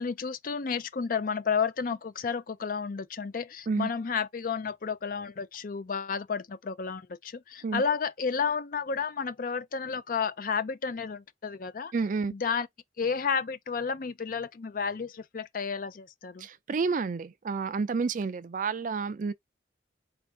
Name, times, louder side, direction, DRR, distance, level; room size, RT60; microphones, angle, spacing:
voice 1, 0.0-11.9 12.3-12.7 13.0-16.5, left 5 dB, 50° left, 0.4 m, -31 dB
voice 2, 11.9-12.3 16.4-19.3, right 4 dB, 45° right, 0.4 m, -30 dB
4.5 x 2.5 x 3.4 m
head